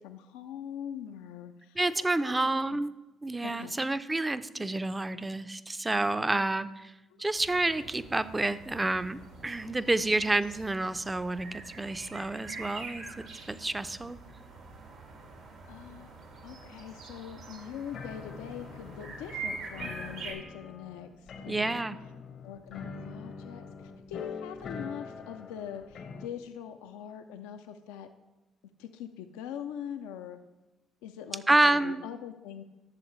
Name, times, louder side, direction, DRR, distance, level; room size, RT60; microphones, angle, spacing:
voice 1, 0.0-2.8 3.4-3.8 7.1-7.2 15.7-21.8 22.4-28.1 28.8-30.4 31.0-32.6, left 9 dB, 80° left, 7 dB, 0.4 m, -43 dB
voice 2, 1.8-2.9 3.2-6.9 7.2-14.2 21.5-22.0 31.5-32.0, right 2 dB, 20° right, 14 dB, 0.5 m, -29 dB
sound 1, 7.4-20.3, right 4 dB, 75° right, 1.8 m, -45 dB
sound 2, 17.9-26.3, left 5 dB, 60° left, 0.7 m, -44 dB
11.5 x 7.0 x 3.1 m, 1.0 s
hypercardioid pair, 50°, 0 cm